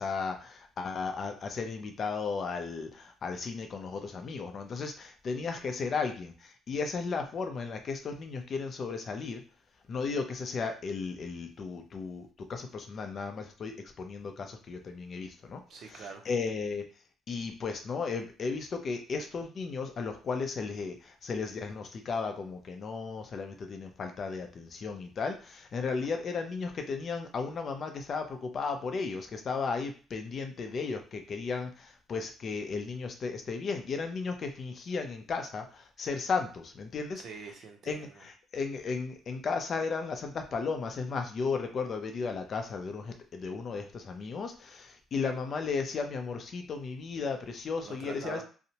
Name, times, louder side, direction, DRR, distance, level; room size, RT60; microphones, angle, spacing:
voice 1, 0.0-9.4 9.9-15.6 15.9-16.8 17.3-37.2 37.9-48.4, left 4 dB, 45° left, 5 dB, 0.4 m, -35 dB
voice 2, 15.7-16.3 37.2-38.2 47.8-48.4, right 6 dB, 60° right, 4 dB, 0.6 m, -44 dB
2.7 x 2.0 x 2.8 m, 0.37 s
cardioid pair, 115°, 0 cm